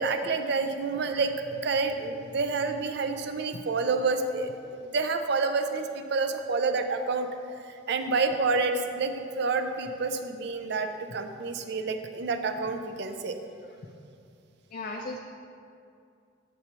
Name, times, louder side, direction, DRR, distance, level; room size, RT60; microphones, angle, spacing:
voice 1, 0.0-4.5 4.8-7.3 7.7-13.4, right 4 dB, 60° right, 7 dB, 0.5 m, -28 dB
voice 2, 14.7-15.2, left 2 dB, 45° left, 1 dB, 0.4 m, -36 dB
8.1 x 6.8 x 2.9 m, 2.4 s
head